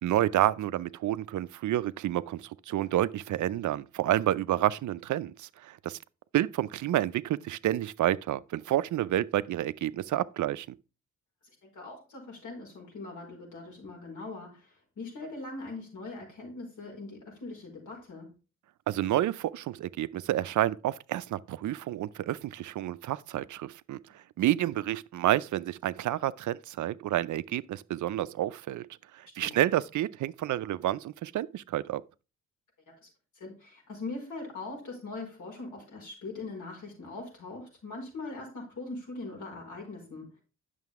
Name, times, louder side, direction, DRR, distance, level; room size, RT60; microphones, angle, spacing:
voice 1, 0.0-6.0 6.3-10.8 18.9-28.9 29.1-32.0, right 13 dB, 65° right, 0.5 m, -29 dB
voice 2, 11.6-18.4 29.4-29.5 32.9-33.1 33.3-40.4, left 3 dB, 65° left, 4.8 m, -41 dB
9.0 x 6.7 x 3.5 m
cardioid pair, 70°, 32 cm